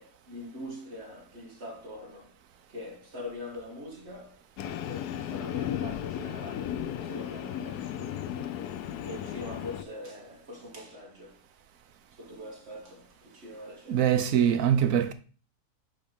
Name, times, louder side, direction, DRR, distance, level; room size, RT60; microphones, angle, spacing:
voice 1, 0.0-2.4 2.7-8.3 8.7-11.4 12.1-14.2, left 1 dB, 45° right, 2.1 m, -43 dB
Train, 4.6-9.8, left 10 dB, 85° left, 1.1 m, -35 dB
voice 2, 13.9-15.1, right 9 dB, 65° right, 1.1 m, -23 dB
5.5 x 4.9 x 5.3 m
omnidirectional pair, 1.7 m